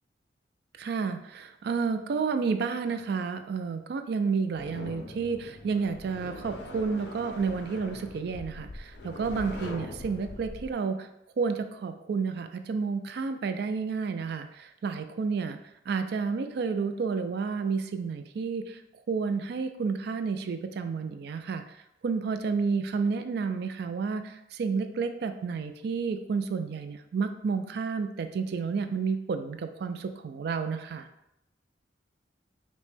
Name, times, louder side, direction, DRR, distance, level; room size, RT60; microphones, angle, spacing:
voice 1, 0.8-11.1 11.4-15.6 15.9-18.8 19.1-21.6 22.0-31.1, right 5 dB, 60° right, 9 dB, 0.3 m, -30 dB
sound 1, 4.5-10.7, left 2 dB, 65° left, 0.5 m, -42 dB
5.1 x 2.1 x 3.2 m, 0.83 s
head